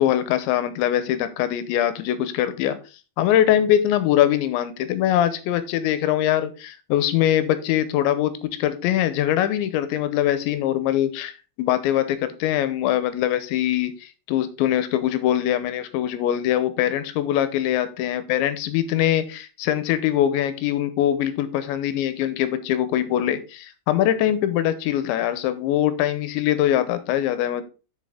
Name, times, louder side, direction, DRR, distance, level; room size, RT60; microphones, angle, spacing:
voice 1, 0.0-2.8 3.2-27.6, left 11 dB, 85° left, 2.8 m, -22 dB
7.6 x 6.9 x 3.6 m
omnidirectional pair, 5.6 m